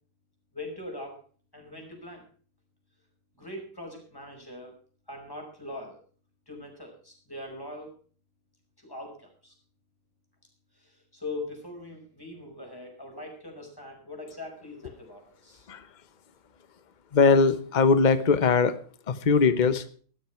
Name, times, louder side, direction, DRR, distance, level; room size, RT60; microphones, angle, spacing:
voice 1, 0.5-1.2 1.5-2.2 3.4-4.8 5.1-6.0 6.5-8.0 8.8-9.5 10.8-15.7, left 2 dB, 10° left, 2 dB, 5.4 m, -41 dB
voice 2, 17.1-18.8 19.1-19.8, left 5 dB, 30° left, 13 dB, 0.9 m, -21 dB
15.5 x 12.5 x 4.5 m, 0.44 s
omnidirectional pair, 2.1 m